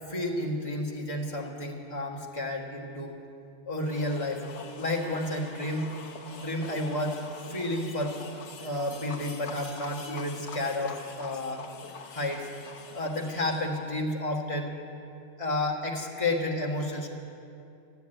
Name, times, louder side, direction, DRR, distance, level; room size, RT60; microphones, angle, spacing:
voice 1, 0.1-3.2 3.7-4.4 4.8-5.9 6.3-7.2 7.5-8.2 8.6-11.6 12.1-12.5 12.9-14.7 15.4-17.1, left 1 dB, 30° left, -2 dB, 1.8 m, -31 dB
sound 1, 3.8-13.9, left 5 dB, 70° left, 1.3 m, -45 dB
13.0 x 9.8 x 9.0 m, 2.6 s
omnidirectional pair, 1.2 m